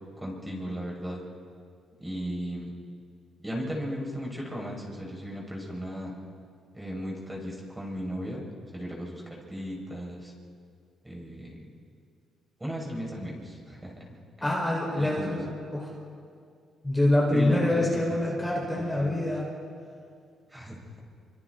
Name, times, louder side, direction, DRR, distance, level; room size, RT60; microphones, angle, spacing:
voice 1, 0.2-1.2 2.0-2.7 3.4-6.1 6.7-8.4 8.7-10.3 11.0-11.7 12.6-14.1 14.4-14.5 14.9-15.4 17.3-17.7 18.1-18.2 18.8-19.2 20.5-21.0, equal, 10° right, -2 dB, 6.3 m, -36 dB
voice 2, 14.4-15.5 15.7-15.9 16.8-19.4, left 1 dB, 10° left, -3 dB, 5.3 m, -25 dB
27.5 x 25.5 x 4.2 m, 2.2 s
cardioid pair, 90°, 0 cm